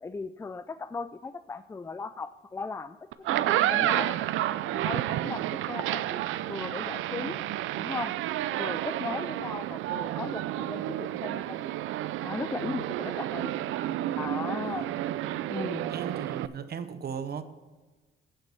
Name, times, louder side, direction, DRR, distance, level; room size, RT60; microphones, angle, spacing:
voice 1, 0.0-4.2 4.7-7.5 7.8-8.1 8.6-11.7 12.2-13.5 14.1-15.0 15.5-15.9, left 4 dB, 15° left, 13 dB, 0.3 m, -37 dB
sound 1, 3.1-16.5, right 13 dB, 85° right, 0.4 m, -30 dB
voice 2, 15.9-17.4, right 7 dB, 55° right, 10 dB, 0.9 m, -37 dB
8.9 x 7.5 x 5.5 m, 1.2 s
cardioid pair, 90°, 20 cm